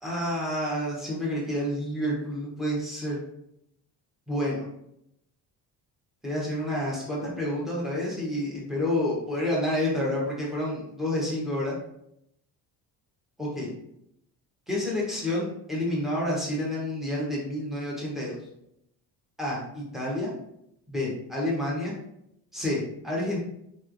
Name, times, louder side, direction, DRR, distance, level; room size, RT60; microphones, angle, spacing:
voice 1, 0.0-3.2 4.3-4.7 6.2-11.8 13.4-13.7 14.7-18.3 19.4-20.3 20.9-21.9 22.5-23.4, left 1 dB, ahead, -5 dB, 0.9 m, -29 dB
4.8 x 3.1 x 2.5 m, 0.78 s
cardioid pair, 175°, 38 cm